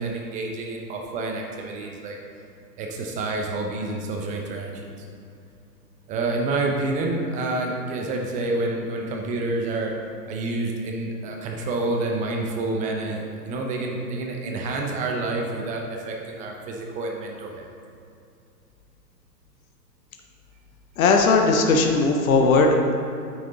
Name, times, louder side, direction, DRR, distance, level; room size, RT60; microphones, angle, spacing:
voice 1, 0.0-2.2 2.8-5.1 6.1-9.9 10.3-17.7, right 2 dB, 15° right, 1 dB, 0.7 m, -28 dB
voice 2, 21.0-22.9, left 3 dB, 55° left, 2 dB, 1.1 m, -18 dB
9.8 x 6.1 x 4.0 m, 2.6 s
hypercardioid pair, 125°, 50 cm